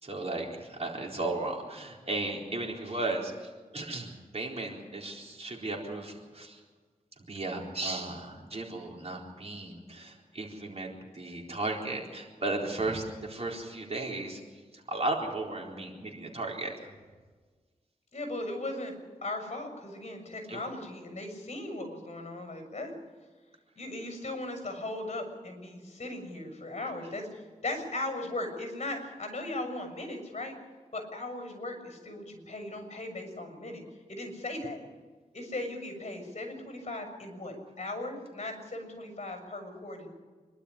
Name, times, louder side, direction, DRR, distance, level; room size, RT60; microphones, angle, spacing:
voice 1, 0.0-6.6 7.3-14.4 14.7-16.7 20.5-20.6, right 2 dB, 45° right, 0 dB, 4.1 m, -35 dB
voice 2, 18.1-22.9 23.7-30.5 30.9-33.8 34.1-34.8 35.3-40.1, left 2 dB, 45° left, 5 dB, 6.6 m, -38 dB
26.0 x 12.0 x 10.0 m, 1.4 s
wide cardioid pair, 85°, 14 cm